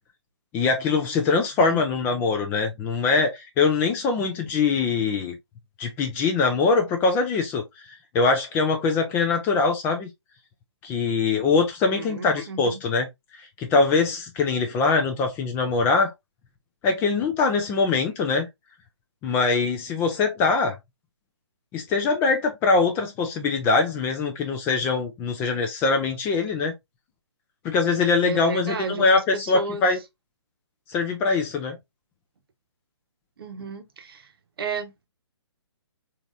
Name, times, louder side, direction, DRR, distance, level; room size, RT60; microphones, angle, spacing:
voice 1, 0.5-5.4 5.8-10.1 10.8-13.1 13.3-16.1 16.8-18.5 19.2-20.8 21.7-26.7 27.6-30.0 30.9-31.8, left 4 dB, 15° left, 0.4 m, -23 dB
voice 2, 11.9-12.8 28.2-29.9 33.4-34.3 34.6-35.1, right 4 dB, 55° right, 0.9 m, -33 dB
3.8 x 3.0 x 2.4 m
figure-of-eight pair, 140°, 15 cm